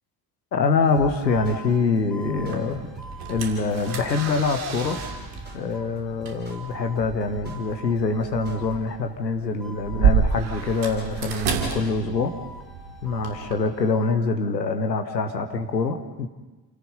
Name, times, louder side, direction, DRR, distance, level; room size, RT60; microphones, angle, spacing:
voice 1, 0.5-2.8 3.3-5.0 5.5-12.3 13.0-16.3, left 4 dB, 90° left, 7 dB, 1.2 m, -25 dB
sound 1, 0.8-9.1 9.6-11.3 11.6-14.2, equal, ahead, 2.5 m, -45 dB
sound 2, 1.0-8.9, right 2 dB, 20° right, 4.8 m, -43 dB
sound 3, 2.4-13.5, right 6 dB, 70° right, 3.1 m, -30 dB
28.5 x 16.5 x 5.5 m, 1.2 s
figure-of-eight pair, 40°, 49 cm